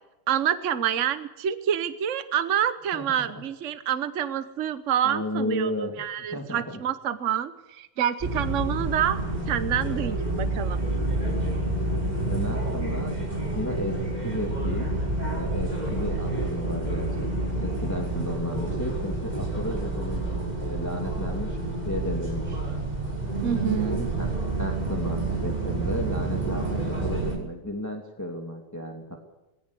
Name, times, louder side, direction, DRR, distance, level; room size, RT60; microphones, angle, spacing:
voice 1, 0.3-5.7 6.0-9.2 9.5-10.8 23.4-24.1, right 9 dB, 55° right, 12 dB, 0.8 m, -27 dB
voice 2, 5.0-6.0 6.3-6.6 12.1-13.9 14.2-14.9 15.2-20.2 20.6-21.6 21.8-22.6 23.8-24.3 24.6-29.2, left 1 dB, 5° left, 2 dB, 2.5 m, -33 dB
sound 1, 8.2-27.4, right 2 dB, 15° right, 5.7 m, -28 dB
21.5 x 16.5 x 8.3 m, 1.0 s
omnidirectional pair, 2.4 m